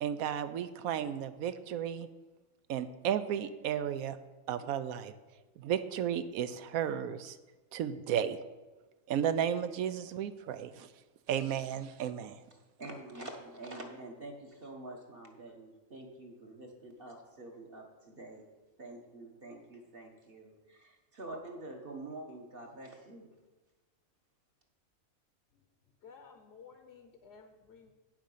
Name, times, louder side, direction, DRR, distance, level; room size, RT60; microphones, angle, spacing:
voice 1, 0.0-2.1 2.7-4.2 4.5-5.1 5.6-7.4 7.7-8.4 9.1-10.9 11.3-12.4, right 9 dB, 85° right, 11 dB, 1.0 m, -33 dB
voice 2, 12.8-18.4 18.8-23.3, right 2 dB, 45° right, 1 dB, 1.3 m, -47 dB
voice 3, 26.0-27.9, left 5 dB, 55° left, 6 dB, 1.0 m, -54 dB
9.0 x 7.3 x 5.5 m, 1.2 s
omnidirectional pair, 1.5 m